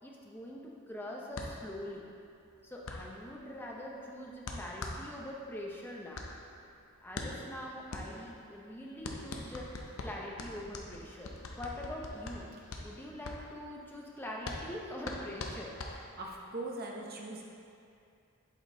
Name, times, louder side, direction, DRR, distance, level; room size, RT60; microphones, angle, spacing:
voice 1, 0.0-2.1 2.6-6.3 7.0-9.8 10.0-12.5 12.8-15.7, left 1 dB, 10° left, -2 dB, 0.6 m, -43 dB
sound 1, 1.3-16.4, left 2 dB, 70° left, 0.6 m, -43 dB
voice 2, 16.2-17.4, right 2 dB, 45° right, -1 dB, 0.8 m, -40 dB
8.1 x 4.3 x 3.7 m, 2.5 s
head